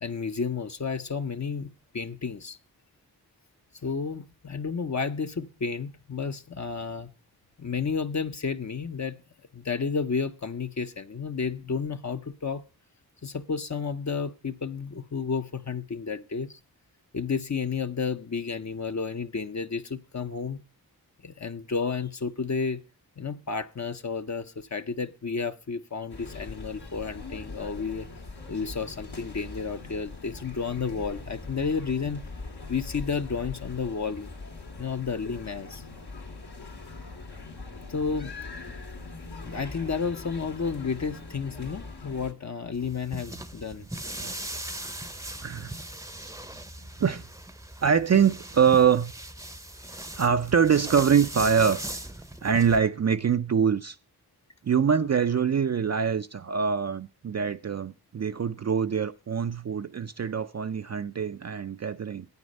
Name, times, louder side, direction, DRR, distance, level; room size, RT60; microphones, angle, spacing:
voice 1, 0.0-2.6 3.8-7.1 7.6-9.2 9.5-12.6 13.2-16.6 17.1-20.6 21.2-22.8 23.2-28.1 28.5-32.2 32.7-34.3 34.8-35.8 37.9-38.3 39.4-43.8, left 5 dB, 45° left, 0.7 m, -31 dB
sound 1, 26.1-42.3, left 3 dB, 80° left, 2.4 m, -41 dB
sound 2, 42.7-52.8, right 1 dB, 10° right, 0.7 m, -39 dB
voice 2, 45.4-45.7 46.2-46.3 47.0-47.3 47.8-49.1 50.2-51.8 52.4-54.0 54.6-62.3, right 7 dB, 45° right, 0.4 m, -24 dB
9.6 x 8.8 x 5.2 m
wide cardioid pair, 65°, 38 cm